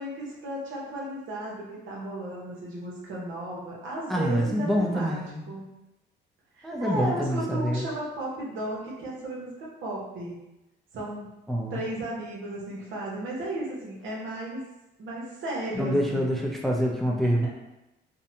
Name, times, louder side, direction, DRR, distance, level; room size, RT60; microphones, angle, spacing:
voice 1, 0.0-5.2 5.5-5.7 6.5-10.4 10.9-11.3 11.7-14.6 15.0-16.4, right 1 dB, 75° right, -4 dB, 0.9 m, -35 dB
voice 2, 4.1-5.5 6.6-7.9 11.5-11.8 15.7-17.5, equal, ahead, -1 dB, 0.4 m, -26 dB
2.7 x 2.1 x 2.7 m, 0.95 s
cardioid pair, 90°, 20 cm